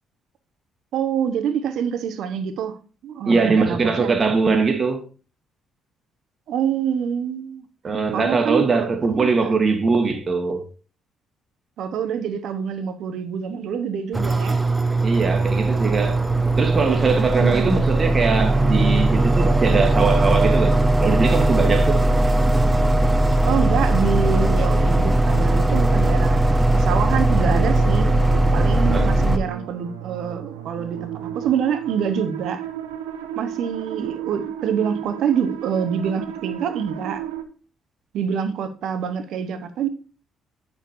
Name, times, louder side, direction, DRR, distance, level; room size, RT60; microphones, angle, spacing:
voice 1, 0.9-2.8 3.0-4.1 6.5-7.6 8.1-9.6 11.8-14.6 17.4-17.6 23.5-28.1 28.5-32.7 33.3-37.2 38.1-39.9, right 7 dB, 65° right, 1.2 m, -26 dB
voice 2, 3.3-5.0 7.8-10.6 15.0-16.2 16.6-22.0 28.7-29.1, right 4 dB, 40° right, 1.6 m, -21 dB
sound 1, 14.1-29.4, right 2 dB, 20° right, 1.0 m, -19 dB
sound 2, 27.5-37.4, right 11 dB, 85° right, 0.9 m, -33 dB
8.7 x 7.0 x 2.7 m
hypercardioid pair, 50°, 0 cm